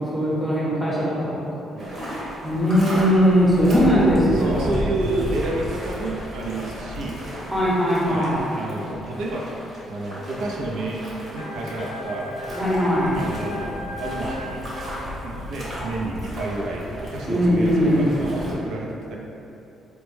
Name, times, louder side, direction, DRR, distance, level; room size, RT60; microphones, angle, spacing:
voice 1, 0.0-1.5 2.4-4.7 7.5-8.5 12.5-13.2 17.3-18.1, equal, ahead, -8 dB, 0.8 m, -20 dB
voice 2, 1.7-2.1 3.6-3.8 4.3-7.2 8.0-9.5 9.9-11.1 11.3-12.3 13.1-14.6 15.2-19.2, right 2 dB, 80° right, -2 dB, 0.4 m, -30 dB
sound 1, 1.8-18.5, equal, 45° right, 0.9 m, -34 dB
sound 2, 11.3-15.8, left 2 dB, 70° left, 0.4 m, -36 dB
4.3 x 2.1 x 3.1 m, 2.9 s
cardioid pair, 150°, 0 cm